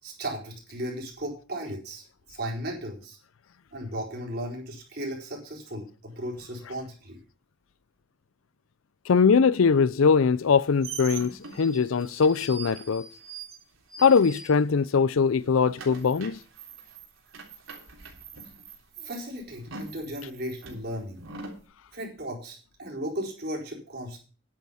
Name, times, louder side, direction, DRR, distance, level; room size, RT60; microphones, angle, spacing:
voice 1, 0.0-2.0 2.3-3.2 3.7-7.2 19.0-21.2 21.9-24.2, equal, 50° right, 4.3 m, -36 dB
voice 2, 9.1-13.1 14.0-16.4, left 5 dB, 85° left, 0.5 m, -21 dB
sound 1, 10.4-15.0 15.3-21.6, right 4 dB, 85° right, 3.4 m, -43 dB
10.5 x 8.3 x 5.6 m
head